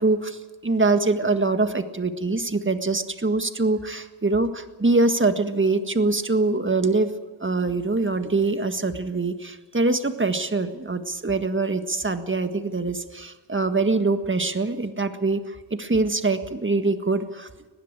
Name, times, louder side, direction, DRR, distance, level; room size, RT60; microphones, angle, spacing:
voice 1, 0.0-7.1 7.4-17.5, right 3 dB, 25° right, 8 dB, 1.7 m, -24 dB
21.0 x 15.0 x 8.9 m, 1.4 s
wide cardioid pair, 75°, 48 cm